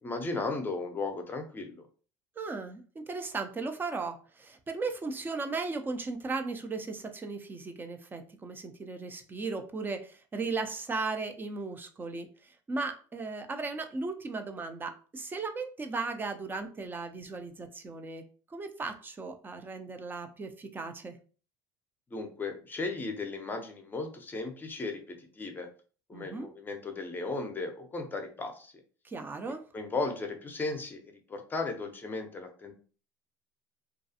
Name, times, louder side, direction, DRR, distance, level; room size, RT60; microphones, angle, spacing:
voice 1, 0.0-1.8 22.1-25.7 26.1-28.7 29.7-32.7, left 3 dB, 20° left, 4 dB, 0.6 m, -36 dB
voice 2, 2.4-18.2 18.5-21.2 26.1-26.5 29.0-29.6, right 3 dB, 20° right, 6 dB, 0.5 m, -36 dB
2.4 x 2.3 x 2.7 m, 0.39 s
supercardioid pair, 95°, 9 cm